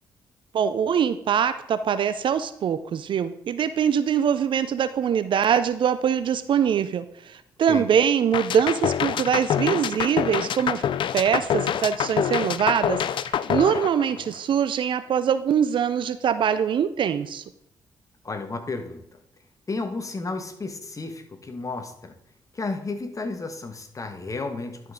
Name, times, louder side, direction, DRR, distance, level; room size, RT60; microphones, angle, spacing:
voice 1, 0.5-10.8 11.1-17.4, right 8 dB, 60° right, 12 dB, 0.5 m, -23 dB
sound 1, 8.3-14.5, left 9 dB, 60° left, 0.4 m, -26 dB
voice 2, 18.2-19.2 19.7-22.1 22.5-24.9, left 3 dB, 35° left, 7 dB, 1.4 m, -32 dB
11.0 x 5.3 x 3.7 m, 0.73 s
hypercardioid pair, 45°, 10 cm